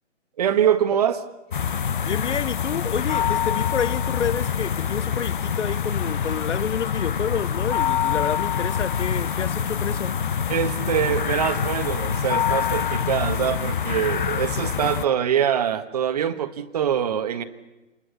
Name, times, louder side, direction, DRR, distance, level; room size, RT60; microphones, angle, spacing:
voice 1, 0.4-1.2 10.5-17.4, right 9 dB, 30° right, 1.4 m, -24 dB
sound 1, 1.5-15.0, left 8 dB, 40° left, 0.9 m, -25 dB
voice 2, 2.0-10.2, left 7 dB, 70° left, 0.8 m, -29 dB
29.0 x 21.5 x 6.9 m
figure-of-eight pair, 150°, 37 cm